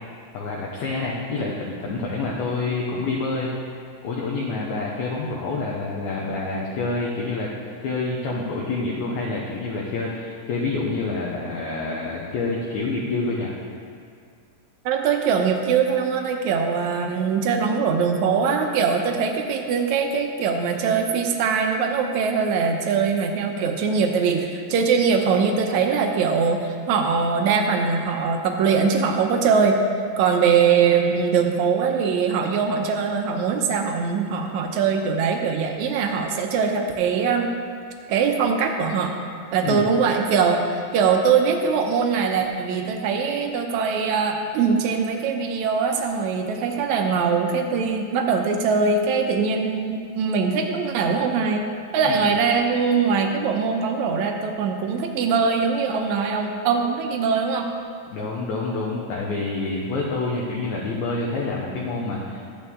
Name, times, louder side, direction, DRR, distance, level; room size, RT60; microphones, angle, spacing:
voice 1, 0.3-3.5 4.0-7.5 7.8-13.5 39.6-39.9 52.0-52.3 58.1-62.4, left 3 dB, 70° left, -3 dB, 2.2 m, -27 dB
voice 2, 14.9-29.8 30.2-37.5 38.1-39.2 39.5-51.7 51.9-57.7, right 5 dB, 70° right, 4 dB, 2.0 m, -22 dB
14.0 x 8.8 x 3.7 m, 2.2 s
omnidirectional pair, 3.8 m